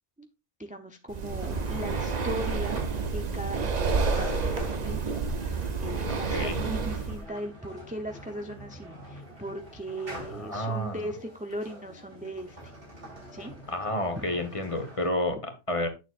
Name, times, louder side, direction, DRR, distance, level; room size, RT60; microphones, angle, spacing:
voice 1, 0.6-2.8 3.1-12.7 13.3-13.5 14.2-14.3, right 1 dB, 10° right, 5 dB, 0.6 m, -38 dB
Breathing, 1.1-7.2, right 4 dB, 40° right, 0.8 m, -29 dB
sound 1, 1.4-3.6 3.9-15.1, right 1 dB, 70° right, 4.7 m, -45 dB
voice 2, 6.0-6.6 10.3-11.0 13.7-15.9, left 1 dB, 25° left, 6 dB, 1.3 m, -30 dB
8.7 x 7.1 x 2.5 m, 0.27 s
omnidirectional pair, 1.2 m